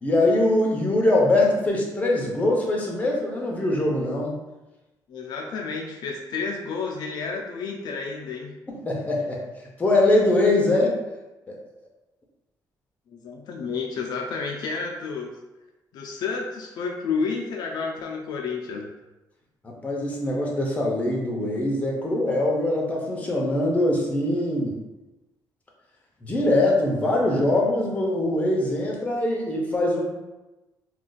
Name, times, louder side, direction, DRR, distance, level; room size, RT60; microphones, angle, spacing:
voice 1, 0.0-4.4 8.7-9.4 9.8-11.0 11.5-11.6 19.6-24.8 26.2-30.0, left 1 dB, 20° left, -1 dB, 0.6 m, -22 dB
voice 2, 5.1-8.5 13.1-15.3 15.9-18.9, left 4 dB, 70° left, 1 dB, 0.4 m, -30 dB
2.4 x 2.3 x 3.8 m, 1.0 s
cardioid pair, 145°, 7 cm